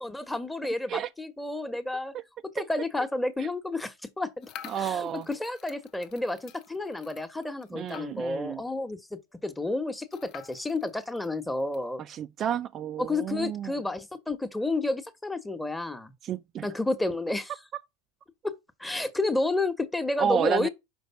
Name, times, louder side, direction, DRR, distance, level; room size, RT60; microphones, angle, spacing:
voice 1, 0.0-2.1 2.5-4.5 4.8-12.0 13.0-16.1 16.6-17.5 18.4-18.5 18.8-20.7, left 2 dB, 5° left, 1.2 m, -30 dB
sound 1, 4.4-8.5 8.8-8.9 9.1-9.2 10.1-11.8, left 9 dB, 45° left, 0.9 m, -48 dB
voice 2, 4.7-5.3 7.7-8.6 12.0-13.7 16.2-16.7 20.2-20.7, right 9 dB, 35° right, 0.4 m, -31 dB
5.2 x 5.2 x 5.6 m
hypercardioid pair, 95°, 0 cm